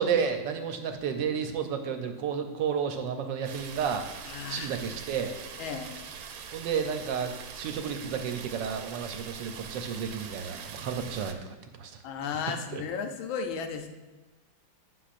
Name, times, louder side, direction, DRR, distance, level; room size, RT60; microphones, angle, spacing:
voice 1, 0.0-4.1 4.5-5.3 6.5-12.0 12.7-12.8, right 7 dB, 70° right, 6 dB, 1.3 m, -31 dB
sound 1, 3.4-11.3, right 6 dB, 85° right, 1.4 m, -43 dB
voice 2, 4.2-4.8 5.6-6.0 12.0-13.9, left 6 dB, 85° left, 6 dB, 1.5 m, -34 dB
10.0 x 5.9 x 2.5 m, 1.2 s
omnidirectional pair, 2.1 m